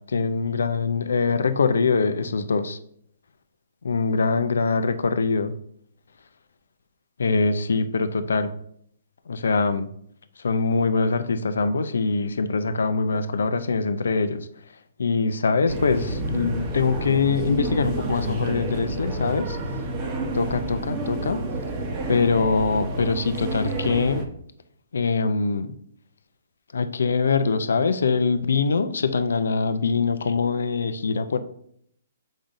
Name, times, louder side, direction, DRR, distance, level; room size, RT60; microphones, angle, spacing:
voice 1, 0.1-2.8 3.8-5.5 7.2-8.5 9.3-9.9 10.4-14.5 15.0-19.6 20.3-21.4 22.1-24.2 24.9-25.7 26.7-31.4, left 4 dB, 85° left, 10 dB, 0.5 m, -23 dB
sound 1, 15.7-24.2, right 2 dB, 25° right, 0.9 m, -29 dB
7.2 x 5.1 x 2.6 m, 0.67 s
hypercardioid pair, 165°, 0 cm